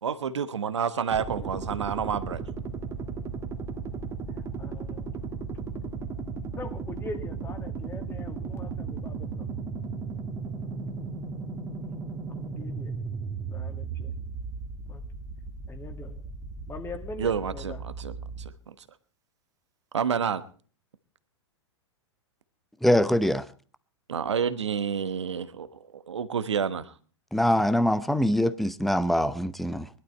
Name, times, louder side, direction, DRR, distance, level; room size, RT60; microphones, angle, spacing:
voice 1, 0.0-2.4 17.2-18.8 19.9-20.4 24.1-26.9, right 7 dB, 75° right, 1.2 m, -29 dB
sound 1, 1.1-18.5, right 4 dB, 25° right, 1.9 m, -36 dB
voice 2, 4.3-5.2 6.6-9.5 12.3-12.9 13.5-14.1 14.9-15.0 15.7-16.2 16.7-17.8, left 3 dB, 15° left, 2.3 m, -42 dB
voice 3, 22.8-23.5 27.3-29.9, equal, ahead, 0.7 m, -23 dB
20.5 x 11.5 x 4.4 m
figure-of-eight pair, 100°, 15 cm